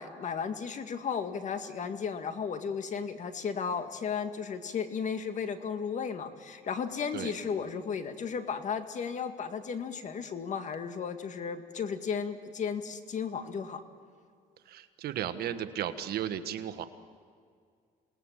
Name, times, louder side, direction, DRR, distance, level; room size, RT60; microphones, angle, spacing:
voice 1, 0.0-13.8, left 6 dB, 45° left, 8 dB, 1.9 m, -34 dB
voice 2, 14.7-16.9, right 10 dB, 65° right, 10 dB, 1.4 m, -35 dB
28.0 x 19.5 x 7.4 m, 2.1 s
cardioid pair, 110°, 17 cm